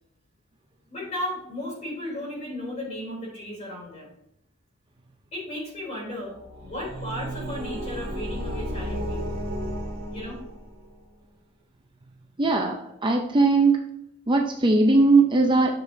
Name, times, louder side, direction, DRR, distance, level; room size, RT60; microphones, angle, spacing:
voice 1, 0.9-4.1 5.3-9.3 10.1-10.4, left 1 dB, 30° left, -3 dB, 3.4 m, -35 dB
sound 1, 6.2-10.9, equal, 45° right, 2.1 m, -33 dB
voice 2, 12.4-13.8 14.3-15.7, right 3 dB, 20° right, 2 dB, 0.5 m, -19 dB
10.5 x 6.7 x 2.7 m, 0.77 s
head